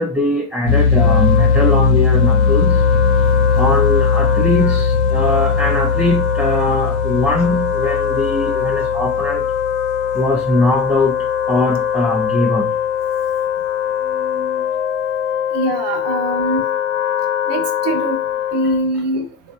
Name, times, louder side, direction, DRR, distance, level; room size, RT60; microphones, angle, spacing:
voice 1, 0.0-2.8 3.5-11.2 11.5-12.7 14.1-15.6 18.9-19.0, left 2 dB, 5° right, -3 dB, 0.5 m, -21 dB
sound 1, 0.6-11.5, left 5 dB, 90° left, 0.8 m, -19 dB
Wind instrument woodwind instrument, 0.8-19.0, left 9 dB, 55° left, 0.7 m, -22 dB
voice 2, 15.5-16.6 17.5-18.2 18.5-19.2, right 2 dB, 60° right, 7 dB, 0.8 m, -22 dB
3.2 x 2.6 x 2.2 m, 0.37 s
hypercardioid pair, 65°, 50 cm